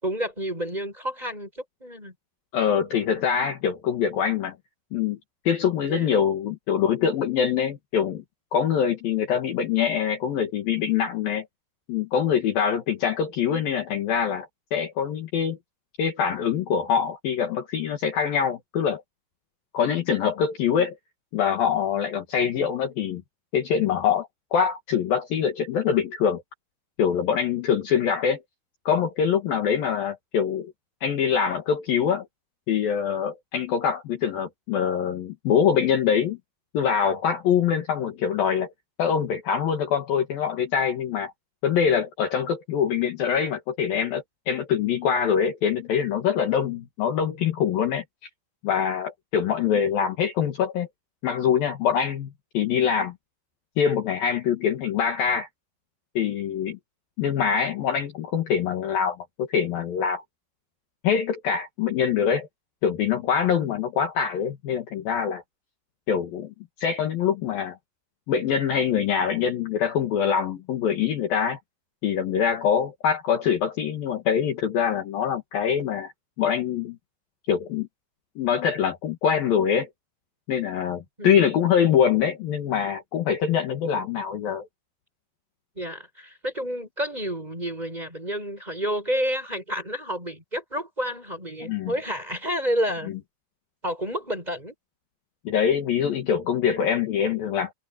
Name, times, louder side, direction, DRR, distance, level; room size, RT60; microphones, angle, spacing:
voice 1, 0.0-2.1 5.9-6.1 81.2-81.4 85.8-93.1 93.8-94.7, equal, 10° right, 7.7 m, -30 dB
voice 2, 2.5-4.6 4.9-5.2 5.4-8.2 8.5-11.5 11.9-15.6 16.0-19.0 19.7-21.0 21.3-23.2 23.5-26.4 27.0-28.4 28.9-30.7 31.0-32.3 32.7-36.4 36.7-38.7 39.0-41.3 41.6-48.0 48.6-50.9 51.2-53.1 53.8-55.5 56.1-56.8 57.2-60.2 61.0-62.5 62.8-65.4 66.1-67.8 68.3-71.6 72.0-76.1 76.4-77.0 77.5-77.9 78.4-79.9 80.5-84.7 91.6-91.9 95.4-97.7, left 7 dB, 60° left, 3.2 m, -24 dB
omnidirectional pair, 5.2 m